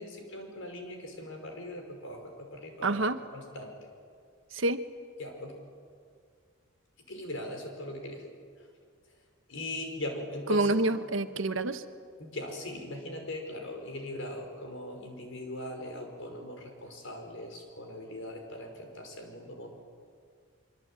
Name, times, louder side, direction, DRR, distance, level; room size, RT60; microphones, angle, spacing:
voice 1, 0.0-3.0 3.3-3.9 5.2-5.6 7.1-8.3 8.6-8.7 9.5-10.8 12.2-19.7, left 1 dB, 70° left, 3 dB, 5.7 m, -40 dB
voice 2, 2.8-3.2 4.5-4.8 10.5-11.8, right 2 dB, 70° right, 9 dB, 1.3 m, -27 dB
25.0 x 24.5 x 9.0 m, 2.1 s
head